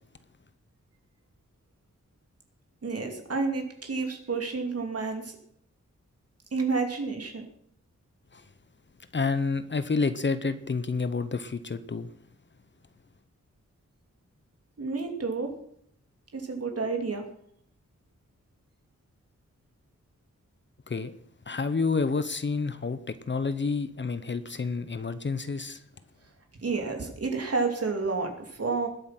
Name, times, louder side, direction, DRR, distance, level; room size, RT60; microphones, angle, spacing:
voice 1, 2.8-5.4 6.5-7.5 14.8-15.5 16.3-17.2 26.6-28.9, right 4 dB, 55° right, 2.9 m, -30 dB
voice 2, 9.1-12.1 20.9-21.1 21.5-25.8, left 4 dB, 40° left, 0.8 m, -29 dB
20.0 x 8.2 x 5.9 m
wide cardioid pair, 135°, 29 cm